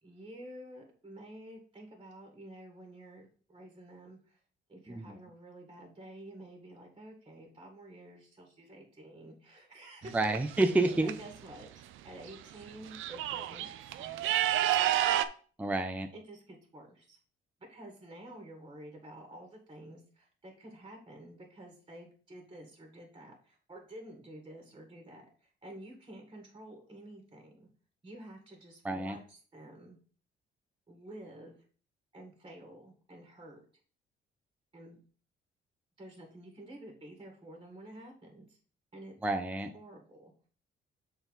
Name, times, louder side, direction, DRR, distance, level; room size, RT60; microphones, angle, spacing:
voice 1, 0.0-4.4 4.7-10.1 10.5-14.3 16.1-17.2 17.7-27.7 28.0-30.0 30.9-31.6 32.1-33.6 34.7-35.0 36.0-38.6 38.9-39.1 39.7-40.5, right 1 dB, 25° right, 2 dB, 1.8 m, -50 dB
sound 1, 10.0-11.1 12.3-12.4 12.7-15.3, right 12 dB, 85° right, 0.5 m, -30 dB
voice 2, 10.1-11.1 15.6-16.1 28.8-29.2 39.2-39.7, right 2 dB, 5° right, 6 dB, 0.6 m, -29 dB
6.9 x 4.0 x 4.0 m, 0.42 s
cardioid pair, 90°, 20 cm